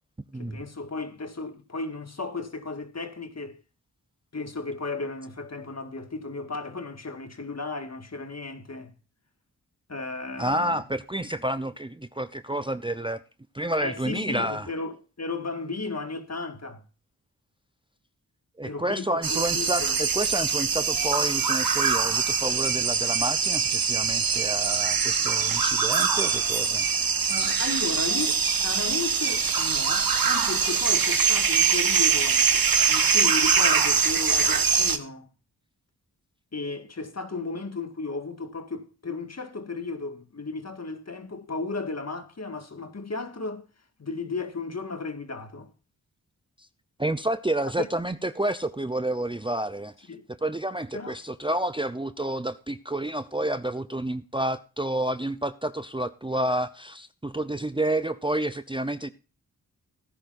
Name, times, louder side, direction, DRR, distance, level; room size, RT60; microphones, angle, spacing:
voice 1, 0.4-3.6 4.3-8.9 9.9-10.8 13.8-16.8 18.6-20.0 27.3-32.5 32.9-35.3 36.5-43.7 44.0-45.7 47.8-47.9 50.1-50.3 50.9-51.2, left 3 dB, 45° left, 1.9 m, -34 dB
voice 2, 10.4-13.2 13.5-14.7 18.6-26.9 47.0-50.1 50.4-59.1, right 1 dB, 15° right, 0.7 m, -29 dB
sound 1, 19.2-35.0, right 6 dB, 65° right, 1.4 m, -23 dB
17.0 x 10.5 x 2.6 m
cardioid pair, 45°, 37 cm